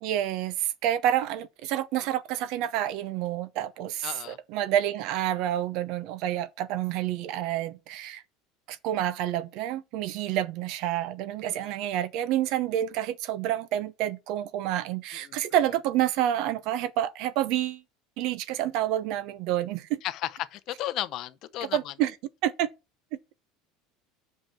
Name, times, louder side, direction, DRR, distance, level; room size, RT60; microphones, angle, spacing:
voice 1, 0.0-8.2 8.7-17.8 18.2-20.0 21.6-22.1 22.4-22.7, right 12 dB, 55° right, 0.8 m, -28 dB
voice 2, 4.0-4.4 11.6-11.7 15.2-15.4 20.0-21.9, left 14 dB, 45° left, 0.7 m, -34 dB
5.8 x 5.3 x 5.9 m
cardioid pair, 155°, 0 cm